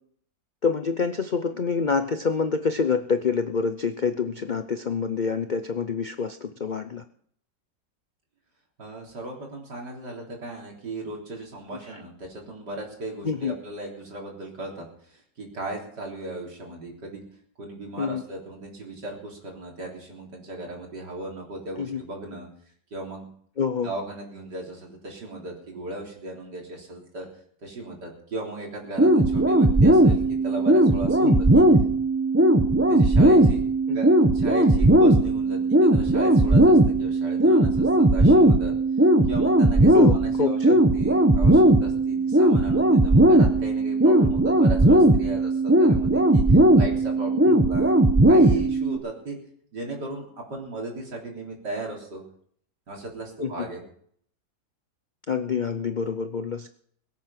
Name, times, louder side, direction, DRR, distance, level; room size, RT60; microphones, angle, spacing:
voice 1, 0.6-7.0 13.2-13.5 18.0-18.2 21.8-22.0 23.6-23.9 31.2-31.4 33.9-34.0 39.9-40.8 47.3-47.6 53.4-53.7 55.3-56.7, left 5 dB, 85° left, 9 dB, 0.4 m, -27 dB
voice 2, 8.8-17.2 17.6-22.5 22.9-23.3 23.8-27.3 27.6-31.6 32.9-38.7 39.3-47.3 47.6-48.0 48.3-49.4 49.7-52.2 52.9-53.8, right 2 dB, 70° right, 0 dB, 4.2 m, -36 dB
sound 1, 29.0-49.0, right 1 dB, 10° right, 0.7 m, -18 dB
22.0 x 8.6 x 5.9 m, 0.63 s
omnidirectional pair, 1.9 m